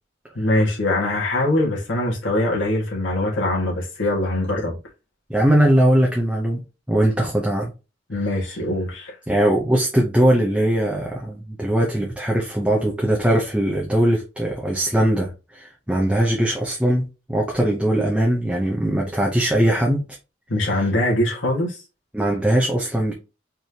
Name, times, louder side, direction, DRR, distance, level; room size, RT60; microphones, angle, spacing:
voice 1, 0.4-4.8 8.1-9.2 20.5-21.8, left 1 dB, 80° left, 1.8 m, -22 dB
voice 2, 5.3-6.6 6.9-7.7 9.3-20.1 22.1-23.1, right 1 dB, 5° right, 0.7 m, -20 dB
4.4 x 3.3 x 2.8 m
head